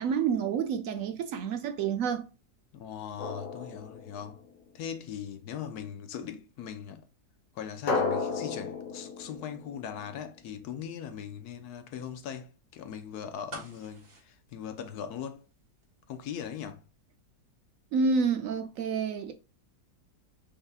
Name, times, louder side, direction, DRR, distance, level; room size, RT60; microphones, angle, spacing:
voice 1, 0.0-2.2 17.9-19.3, right 5 dB, 70° right, 0.9 m, -28 dB
voice 2, 2.7-4.4 4.7-7.0 7.5-15.4 16.1-16.8, left 8 dB, 80° left, 1.2 m, -40 dB
Drum, 3.2-4.7 7.9-10.6, left 4 dB, 60° left, 1.4 m, -34 dB
sound 1, 13.5-15.5 15.8-15.9, right 3 dB, 90° right, 2.2 m, -46 dB
5.4 x 3.4 x 2.3 m
omnidirectional pair, 1.7 m